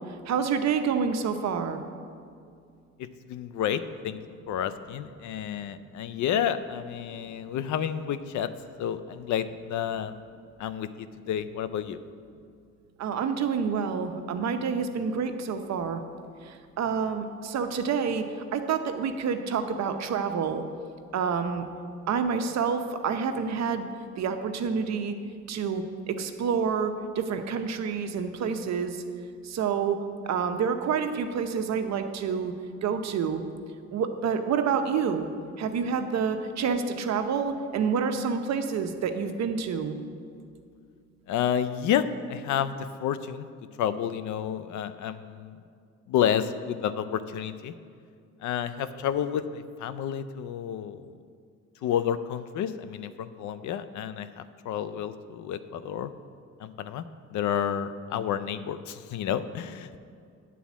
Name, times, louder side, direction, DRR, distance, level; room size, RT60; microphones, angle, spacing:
voice 1, 0.3-1.8 13.0-16.0 16.5-18.2 18.5-20.6 21.1-21.7 22.1-23.9 24.2-25.2 25.5-29.0 29.4-30.0 30.3-32.5 32.8-33.4 33.9-35.3 35.6-39.9, right 6 dB, 60° right, 7 dB, 0.7 m, -28 dB
voice 2, 3.0-4.2 4.5-8.5 8.8-10.1 10.6-12.0 41.3-43.5 43.8-45.6 46.1-47.7 48.4-51.1 51.8-56.1 56.6-57.0 57.3-60.0, left 9 dB, 75° left, 13 dB, 0.5 m, -30 dB
9.3 x 4.2 x 7.2 m, 2.3 s
cardioid pair, 90°, 30 cm